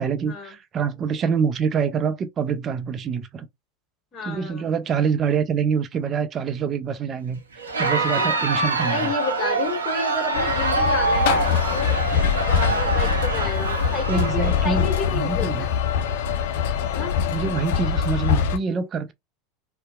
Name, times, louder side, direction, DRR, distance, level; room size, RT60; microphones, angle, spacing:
voice 1, 0.0-3.5 4.3-7.4 7.8-9.1 14.1-15.7 17.3-19.1, right 6 dB, 35° right, 0.4 m, -25 dB
voice 2, 4.1-4.6 8.1-8.3 8.8-15.7 16.9-17.1, left 4 dB, 40° left, 1.4 m, -31 dB
Crowd, 7.6-15.1, right 3 dB, 90° right, 0.6 m, -25 dB
sound 1, 10.3-18.6, left 7 dB, 65° left, 0.3 m, -23 dB
2.7 x 2.1 x 2.2 m
hypercardioid pair, 85°, 0 cm